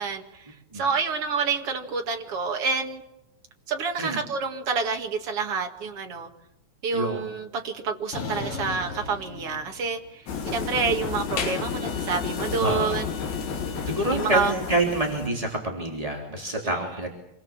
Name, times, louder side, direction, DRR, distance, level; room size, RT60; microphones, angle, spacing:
voice 1, 0.0-3.0 3.7-6.3 6.8-13.1 14.1-14.5, right 5 dB, 55° right, 4 dB, 1.5 m, -28 dB
voice 2, 6.9-7.3 12.6-13.2 13.8-17.1, right 1 dB, 10° right, 0 dB, 2.0 m, -27 dB
sound 1, 8.1-10.1 10.4-14.7, left 4 dB, 35° left, 3.0 m, -40 dB
sound 2, 10.3-15.3, left 6 dB, 55° left, 4.7 m, -31 dB
27.5 x 22.0 x 7.4 m, 0.88 s
omnidirectional pair, 5.9 m